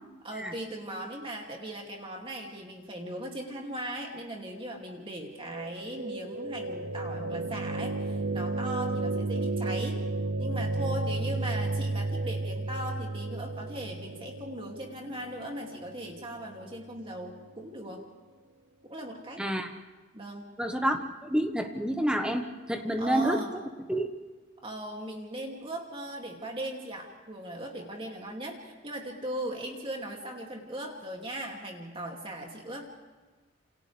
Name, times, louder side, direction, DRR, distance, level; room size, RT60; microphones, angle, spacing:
voice 1, 0.2-10.0 10.4-18.0 18.9-19.4 20.1-20.5 23.0-23.5 24.6-32.9, right 1 dB, 25° right, 0 dB, 2.7 m, -38 dB
sound 1, 5.4-17.4, right 2 dB, 65° right, 0.8 m, -33 dB
voice 2, 19.4-19.7 20.6-23.4 23.9-24.1, right 1 dB, 5° right, 4 dB, 1.4 m, -28 dB
28.5 x 27.5 x 3.5 m, 1.3 s
head